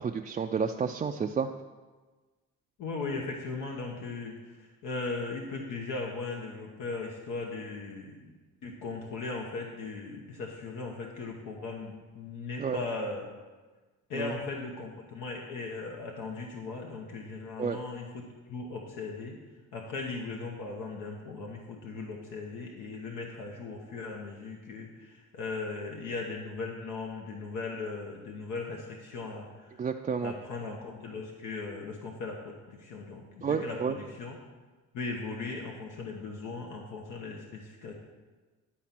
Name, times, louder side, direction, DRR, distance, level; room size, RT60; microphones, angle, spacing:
voice 1, 0.0-1.5 12.6-12.8 14.1-14.3 17.6-17.8 29.8-30.3 33.4-34.0, right 6 dB, 25° right, 3 dB, 0.3 m, -30 dB
voice 2, 2.8-8.3 8.6-13.3 14.1-19.4 19.7-29.8 30.2-34.4 34.9-37.9, left 3 dB, 85° left, 0 dB, 1.1 m, -38 dB
10.5 x 4.2 x 5.9 m, 1.3 s
cardioid pair, 90°, 30 cm